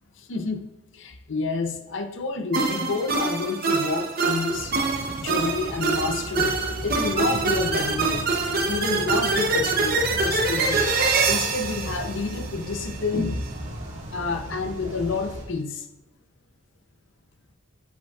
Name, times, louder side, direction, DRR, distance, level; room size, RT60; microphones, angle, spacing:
voice 1, 0.2-0.7 0.9-4.7 5.2-6.6 6.8-10.9 11.3-13.5 14.1-15.9, left 3 dB, 60° left, 7 dB, 0.6 m, -29 dB
sound 1, 2.5-12.9, right 4 dB, 45° right, 0.8 m, -25 dB
sound 2, 4.5-15.4, right 1 dB, 65° right, 1.7 m, -36 dB
9.1 x 5.1 x 2.4 m, 0.87 s
head